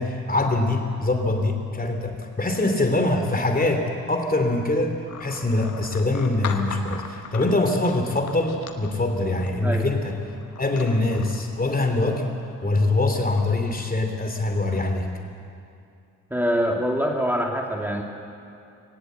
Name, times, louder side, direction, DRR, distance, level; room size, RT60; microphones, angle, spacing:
voice 1, 0.0-10.2 10.6-12.2 12.6-15.1, left 2 dB, 20° left, 5 dB, 3.0 m, -23 dB
sound 1, 5.1-13.0, left 6 dB, 90° left, 1.1 m, -40 dB
voice 2, 16.3-18.0, equal, 5° right, 0 dB, 2.7 m, -24 dB
19.5 x 18.5 x 8.0 m, 2.5 s
figure-of-eight pair, 40°, 41 cm